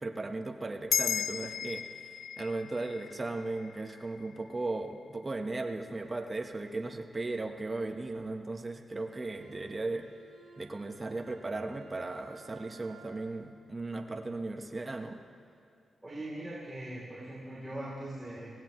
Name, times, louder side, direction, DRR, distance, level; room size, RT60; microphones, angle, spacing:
voice 1, 0.0-10.1 10.6-15.2, right 2 dB, 25° right, 4 dB, 1.1 m, -37 dB
sound 1, 0.9-5.6, left 8 dB, 90° left, 0.3 m, -36 dB
Bowed string instrument, 9.1-13.4, right 4 dB, 80° right, 2.4 m, -57 dB
voice 2, 16.0-18.5, right 1 dB, 10° right, -8 dB, 3.3 m, -41 dB
24.5 x 17.0 x 3.1 m, 2.7 s
cardioid pair, 105°, 0 cm